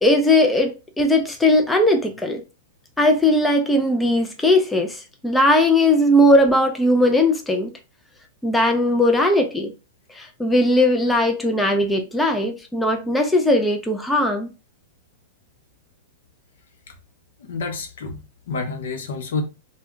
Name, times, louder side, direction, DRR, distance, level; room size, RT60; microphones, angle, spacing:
voice 1, 0.0-2.4 3.0-7.7 8.4-9.7 10.1-14.5, left 1 dB, 5° left, 0.4 m, -18 dB
voice 2, 17.4-19.4, left 4 dB, 75° left, 0.7 m, -29 dB
2.3 x 2.2 x 3.6 m
hypercardioid pair, 120°, 0 cm